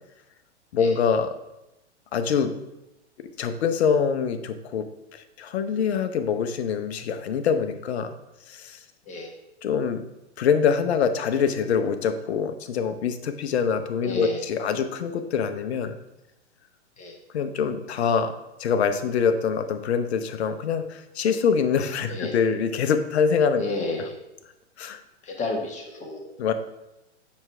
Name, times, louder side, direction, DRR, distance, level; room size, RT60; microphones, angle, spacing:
voice 1, 0.7-1.3 2.1-2.5 3.2-4.9 5.1-8.1 8.5-8.8 9.6-10.0 10.4-15.9 17.3-18.3 18.6-23.6 24.8-25.0 26.4-26.5, left 6 dB, 65° left, 9 dB, 0.9 m, -24 dB
voice 2, 14.0-14.4 17.0-17.2 22.1-22.4 23.6-24.1 25.2-26.3, left 2 dB, 20° left, 1 dB, 1.5 m, -31 dB
7.2 x 6.0 x 3.3 m, 0.94 s
hypercardioid pair, 120°, 35 cm